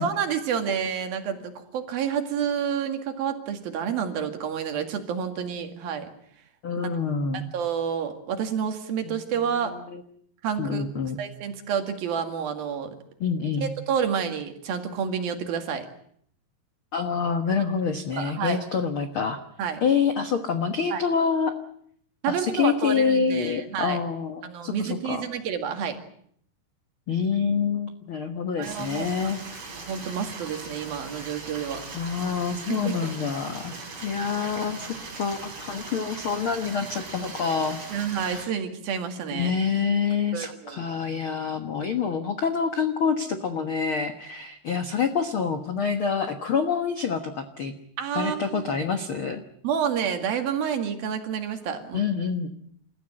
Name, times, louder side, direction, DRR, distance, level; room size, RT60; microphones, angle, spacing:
voice 1, 0.0-6.1 7.5-9.7 10.4-10.8 11.2-13.0 13.6-15.9 18.2-18.6 19.6-19.8 20.9-21.0 22.2-24.0 24.4-26.0 28.6-29.3 29.7-31.8 32.7-32.9 37.9-39.5 40.3-40.8 48.0-48.8 49.6-52.0, right 7 dB, 65° right, 6 dB, 3.8 m, -29 dB
voice 2, 6.6-7.4 9.0-9.2 9.7-10.0 10.6-11.2 13.2-13.7 16.9-19.4 19.8-21.5 22.3-25.3 27.1-29.4 31.9-33.7 34.0-37.8 38.1-38.4 39.3-47.7 48.1-49.4 51.9-52.6, left 6 dB, 80° left, 7 dB, 1.2 m, -27 dB
Stream, 28.6-38.4, right 3 dB, 40° right, 5.8 m, -39 dB
29.0 x 14.5 x 8.8 m, 0.66 s
omnidirectional pair, 4.7 m